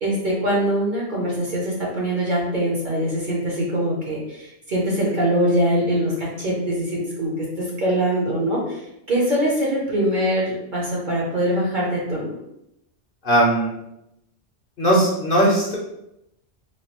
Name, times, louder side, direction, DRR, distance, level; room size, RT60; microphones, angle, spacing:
voice 1, 0.0-8.8 9.1-12.3, equal, 45° right, -4 dB, 0.8 m, -23 dB
voice 2, 13.2-13.7 14.8-15.8, right 1 dB, 50° left, -4 dB, 0.8 m, -18 dB
3.2 x 2.3 x 2.8 m, 0.82 s
omnidirectional pair, 1.3 m